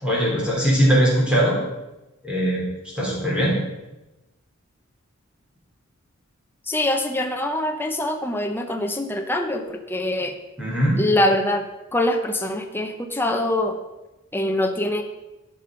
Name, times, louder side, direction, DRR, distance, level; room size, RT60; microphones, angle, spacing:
voice 1, 0.0-1.6 2.2-2.6 3.0-3.6 10.6-11.0, equal, 5° right, -5 dB, 3.6 m, -20 dB
voice 2, 6.7-10.3 11.0-11.7 11.9-13.8 14.3-15.0, left 1 dB, 10° left, 4 dB, 0.7 m, -24 dB
13.0 x 5.4 x 5.1 m, 1.0 s
head